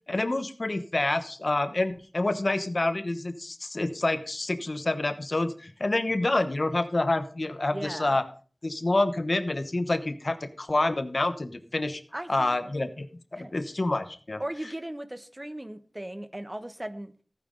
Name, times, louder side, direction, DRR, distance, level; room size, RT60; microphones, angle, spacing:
voice 1, 0.1-8.2 8.6-12.0 12.3-13.1 13.3-14.4, left 2 dB, 65° left, 11 dB, 1.0 m, -27 dB
voice 2, 7.7-8.2 12.1-12.9 13.3-13.5 14.4-17.1, right 1 dB, 25° right, 11 dB, 1.0 m, -38 dB
15.0 x 9.2 x 3.9 m, 0.40 s
wide cardioid pair, 50°, 0 cm